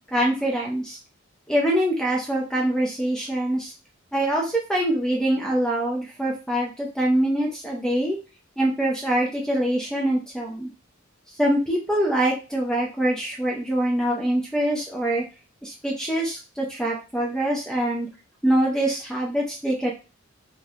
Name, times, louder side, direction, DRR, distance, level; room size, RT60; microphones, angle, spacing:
voice 1, 0.1-1.0 1.5-3.7 4.1-8.2 8.6-10.7 11.4-15.2 15.6-18.1 18.4-19.9, right 1 dB, 5° left, -2 dB, 0.5 m, -24 dB
2.7 x 2.2 x 3.4 m, 0.31 s
head